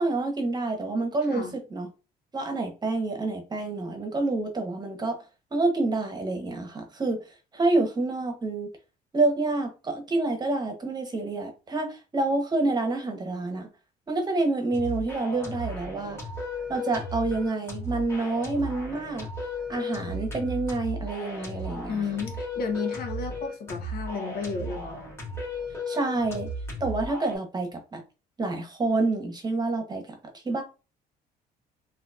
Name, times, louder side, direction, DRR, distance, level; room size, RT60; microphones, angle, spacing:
voice 1, 0.0-1.9 2.3-5.2 5.5-7.2 7.5-8.7 9.1-13.7 14.1-16.2 16.7-19.3 19.7-22.0 25.9-26.5 26.8-28.0 28.4-30.6, right 2 dB, 25° right, 1.0 m, -28 dB
sound 1, 14.7-27.4, left 1 dB, 15° left, 1.8 m, -35 dB
voice 2, 21.9-25.0, left 5 dB, 65° left, 1.1 m, -32 dB
4.0 x 2.7 x 2.5 m
cardioid pair, 110°, 17 cm